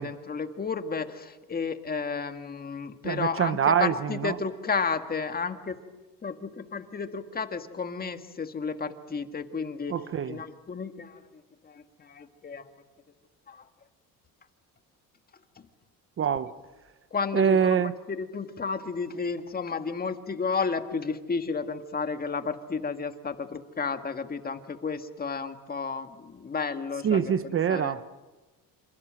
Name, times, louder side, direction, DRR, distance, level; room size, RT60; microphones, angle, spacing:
voice 1, 0.0-5.8 6.2-10.0 10.2-11.2 11.6-12.6 13.5-13.6 17.1-27.2 27.7-28.0, left 5 dB, 25° left, 8 dB, 1.9 m, -32 dB
voice 2, 3.0-4.4 9.9-10.4 16.2-16.5 17.3-17.9 27.0-28.1, right 8 dB, 35° right, 13 dB, 1.0 m, -25 dB
28.0 x 27.5 x 7.7 m, 1.1 s
cardioid pair, 135°, 36 cm